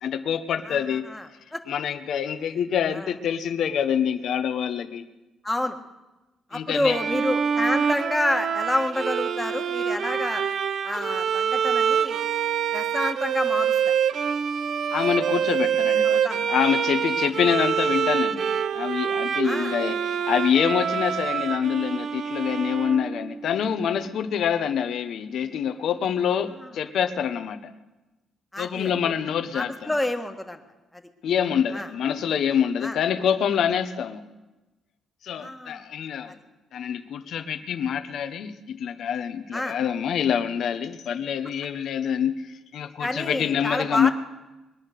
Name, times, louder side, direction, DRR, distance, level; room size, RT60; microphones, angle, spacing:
voice 1, 0.0-1.1 1.7-5.0 6.5-7.0 10.0-10.1 14.9-18.5 18.7-27.7 28.6-29.9 31.2-34.2 35.2-36.3 36.7-42.4 42.7-44.1, left 8 dB, 70° left, 9 dB, 1.1 m, -26 dB
voice 2, 0.7-1.3 1.5-1.6 2.9-3.1 5.4-5.8 6.5-10.4 10.8-12.2 12.7-13.9 16.0-16.4 19.4-19.7 28.5-28.9 29.5-30.6 31.7-31.9 32.8-33.0 35.3-35.8 39.5-39.7 43.0-44.1, left 1 dB, 10° left, 5 dB, 1.5 m, -28 dB
Bowed string instrument, 6.9-23.4, right 7 dB, 65° right, 0.6 m, -26 dB
21.5 x 9.6 x 6.7 m, 1.1 s
cardioid pair, 90°, 0 cm